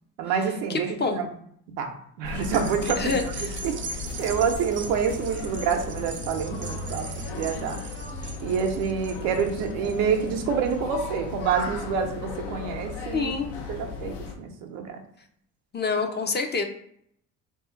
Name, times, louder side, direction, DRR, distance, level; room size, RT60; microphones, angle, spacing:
voice 1, 0.2-1.3 1.8-7.8 8.4-13.3 13.7-15.0, right 6 dB, 80° right, 4 dB, 0.7 m, -28 dB
voice 2, 0.7-1.2 2.8-3.6 13.1-13.5 15.7-16.6, left 4 dB, 25° left, 4 dB, 0.5 m, -27 dB
sound 1, 2.2-14.3, left 4 dB, 70° left, 0.8 m, -36 dB
sound 2, 2.4-11.0 11.5-11.6, right 4 dB, 30° right, 0.4 m, -40 dB
2.7 x 2.4 x 3.7 m, 0.68 s
hypercardioid pair, 60°, 41 cm